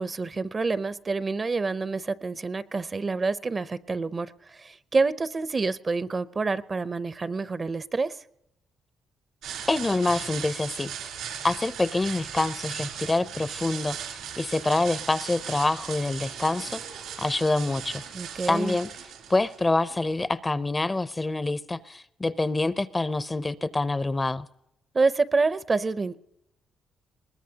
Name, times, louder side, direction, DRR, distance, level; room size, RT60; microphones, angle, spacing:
voice 1, 0.0-8.2 18.1-18.8 24.9-26.2, right 3 dB, 30° right, 0.5 m, -27 dB
sound 1, 9.4-20.1, right 8 dB, 90° right, 3.0 m, -38 dB
voice 2, 9.7-10.9 11.4-16.8 17.2-18.0 18.5-18.9 19.3-24.5, left 2 dB, 20° left, 0.5 m, -26 dB
21.5 x 19.5 x 2.8 m
cardioid pair, 90°, 0 cm